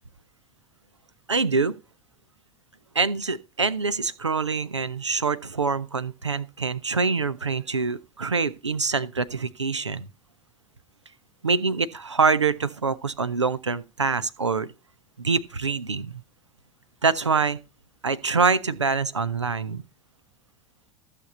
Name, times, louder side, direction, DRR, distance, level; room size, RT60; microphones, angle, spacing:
voice 1, 1.3-1.8 2.9-10.1 11.4-14.7 15.2-16.2 17.0-17.6 18.0-19.8, right 4 dB, 85° right, 0.6 m, -25 dB
14.5 x 6.8 x 4.1 m
figure-of-eight pair, 70°, 15 cm